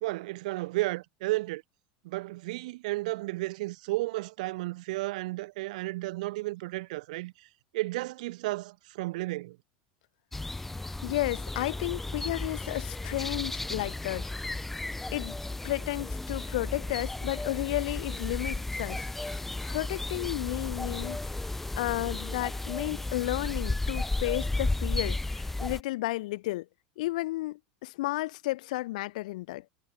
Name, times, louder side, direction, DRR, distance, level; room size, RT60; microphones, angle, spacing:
voice 1, 0.0-1.6 2.0-7.5 7.7-9.6, right 20 dB, 70° right, 0.9 m, -33 dB
sound 1, 10.3-25.8, left 2 dB, 5° left, 0.6 m, -34 dB
voice 2, 11.0-14.5 15.1-15.4 15.6-19.1 19.7-21.2 21.8-26.7 27.0-29.6, left 18 dB, 80° left, 0.8 m, -32 dB
supercardioid pair, 165°, 4 cm